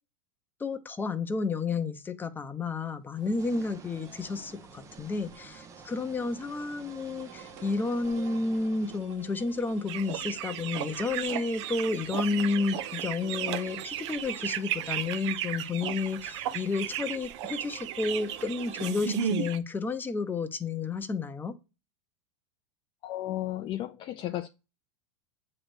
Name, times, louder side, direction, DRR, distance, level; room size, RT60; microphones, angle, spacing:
voice 1, 0.6-21.6, left 4 dB, 10° left, 0.8 m, -31 dB
sound 1, 3.2-19.0, right 8 dB, 50° right, 1.6 m, -49 dB
sound 2, 3.4-9.0, right 5 dB, 20° right, 0.6 m, -51 dB
sound 3, 9.9-19.6, right 10 dB, 65° right, 0.8 m, -34 dB
voice 2, 23.0-24.5, left 14 dB, 30° left, 0.5 m, -34 dB
7.8 x 3.3 x 6.1 m
supercardioid pair, 135°, 16 cm